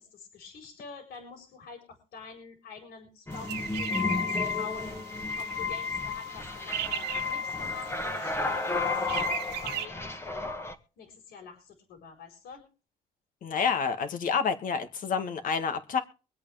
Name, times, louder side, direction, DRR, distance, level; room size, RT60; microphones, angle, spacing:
voice 1, 0.0-10.5 11.0-12.6, left 5 dB, 70° left, 4 dB, 4.4 m, -47 dB
sound 1, 3.3-10.8, left 4 dB, 15° left, 1.7 m, -32 dB
sound 2, 3.3-9.9, right 13 dB, 90° right, 1.3 m, -39 dB
voice 2, 13.4-16.0, left 6 dB, 55° left, 8 dB, 2.0 m, -28 dB
24.0 x 8.3 x 3.5 m, 0.35 s
cardioid pair, 110°, 17 cm